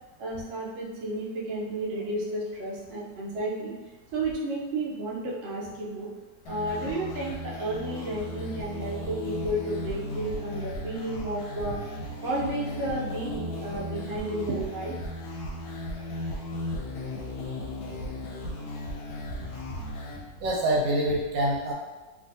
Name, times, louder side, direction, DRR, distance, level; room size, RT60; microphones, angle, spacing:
voice 1, 0.2-3.7 4.1-6.1 6.5-11.8 12.2-14.9, right 1 dB, 65° right, -4 dB, 0.7 m, -32 dB
sound 1, 6.5-20.2, left 1 dB, 70° left, 1.0 m, -36 dB
voice 2, 20.1-21.7, right 1 dB, 80° right, -3 dB, 1.4 m, -27 dB
3.4 x 2.4 x 2.6 m, 1.2 s
omnidirectional pair, 2.0 m